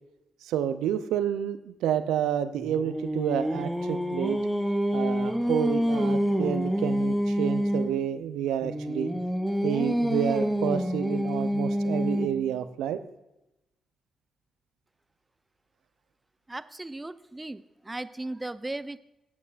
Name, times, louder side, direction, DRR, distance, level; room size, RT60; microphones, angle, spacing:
voice 1, 0.4-4.4 4.9-9.1 9.6-13.0, right 10 dB, 75° right, 11 dB, 0.5 m, -29 dB
Singing, 2.6-8.0 8.6-12.5, equal, ahead, 1.0 m, -27 dB
voice 2, 16.5-19.0, right 2 dB, 20° right, 14 dB, 0.6 m, -37 dB
15.5 x 8.3 x 2.5 m, 0.92 s
hypercardioid pair, 40°, 0 cm